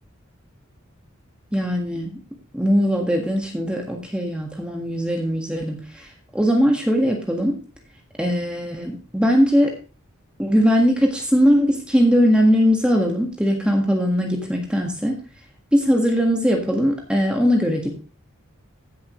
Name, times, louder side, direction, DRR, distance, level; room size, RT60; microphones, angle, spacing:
voice 1, 1.5-2.2 2.5-7.6 8.2-9.7 10.4-15.2 15.7-17.9, equal, 5° right, 1 dB, 1.6 m, -20 dB
15.5 x 7.2 x 3.1 m, 0.34 s
head